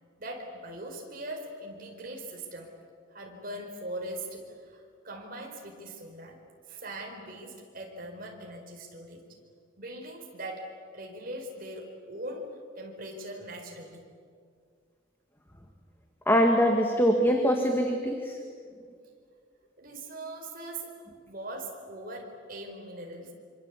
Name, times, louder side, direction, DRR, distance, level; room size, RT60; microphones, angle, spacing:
voice 1, 0.2-2.7 3.1-6.4 6.7-9.3 9.8-14.0 19.8-23.3, right 1 dB, 45° right, 1 dB, 4.7 m, -41 dB
voice 2, 16.3-18.4, equal, 10° left, 3 dB, 1.8 m, -23 dB
26.0 x 25.5 x 8.4 m, 2.1 s
head